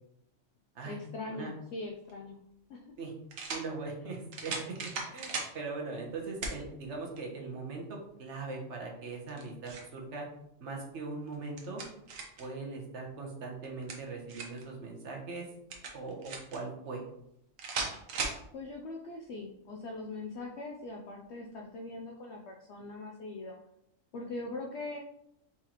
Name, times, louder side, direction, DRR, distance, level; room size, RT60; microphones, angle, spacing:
voice 1, 0.8-2.4 2.7-2.9 18.5-23.6 24.1-25.0, left 2 dB, 65° left, 0 dB, 0.8 m, -41 dB
sound 1, 2.1-2.2 3.3-3.7 4.3-5.5 6.4-6.6 7.2-7.3 9.1-9.9 11.3-12.5 13.6-14.6 15.7-16.6 17.6-18.4, right 4 dB, 80° right, 1.2 m, -37 dB
voice 2, 3.5-7.8 8.2-10.3 10.6-11.8 12.4-15.5 15.9-17.0, right 3 dB, 65° right, 0 dB, 1.2 m, -40 dB
4.4 x 3.7 x 2.9 m, 0.77 s
omnidirectional pair, 1.4 m